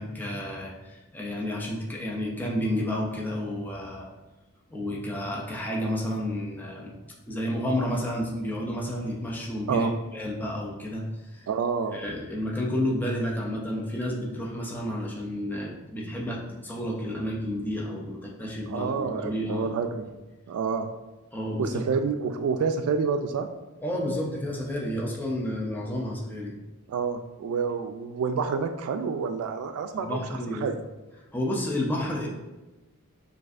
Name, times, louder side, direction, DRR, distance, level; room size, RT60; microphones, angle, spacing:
voice 1, 0.0-4.1 4.7-7.0 7.3-11.5 11.9-19.8 21.3-21.8 23.8-26.5 30.0-30.7 31.3-32.3, left 1 dB, 10° left, -3 dB, 0.5 m, -31 dB
voice 2, 11.5-12.0 18.7-20.1 20.5-20.9 21.6-23.5 26.9-30.2 30.6-30.8, right 5 dB, 85° right, 8 dB, 0.3 m, -28 dB
6.3 x 2.6 x 2.5 m, 1.1 s
head